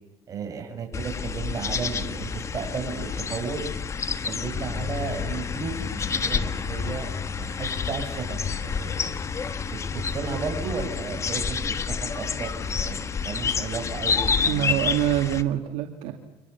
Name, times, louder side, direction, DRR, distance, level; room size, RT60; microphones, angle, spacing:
voice 1, 0.3-3.7 4.3-9.2 9.9-14.9, right 5 dB, 35° right, 3 dB, 7.3 m, -34 dB
sound 1, 0.9-15.4, left 6 dB, 30° left, 1.4 m, -29 dB
voice 2, 14.5-16.1, right 13 dB, 70° right, 3 dB, 2.4 m, -25 dB
29.5 x 25.5 x 7.2 m, 1.0 s
cardioid pair, 120°, 10 cm